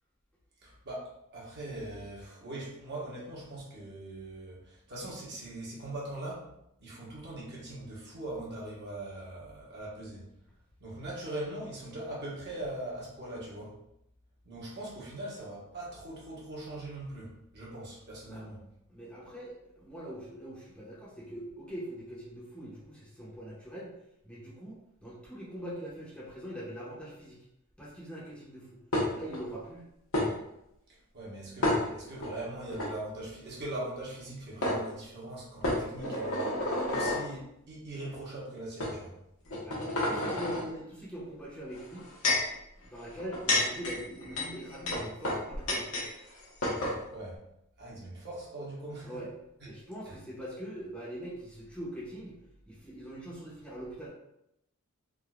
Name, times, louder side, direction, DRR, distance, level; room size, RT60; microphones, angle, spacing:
voice 1, 0.6-6.5 6.8-10.3 10.8-13.8 14.4-18.6 30.9-39.2 46.8-47.4 47.8-49.2 49.6-49.7 50.1-50.2, right 1 dB, 55° right, -5 dB, 1.1 m, -41 dB
voice 2, 18.9-23.9 24.2-27.4 27.8-28.8 29.1-29.9 39.6-42.1 42.8-45.9 49.0-49.3 49.7-52.4 52.7-54.1, right 1 dB, 5° left, -7 dB, 0.7 m, -43 dB
dish - ceramic cup sounds, 28.9-29.4 30.1-30.3 31.6-32.3 32.7-32.9 34.2-34.3 34.6-34.8 35.6-37.2 38.0-38.2 38.8-38.9 39.5-40.6 41.7-42.5 43.2-46.1 46.3-46.4 46.6-47.0, left 1 dB, 70° left, 0.9 m, -30 dB
3.6 x 2.5 x 2.3 m, 0.80 s
head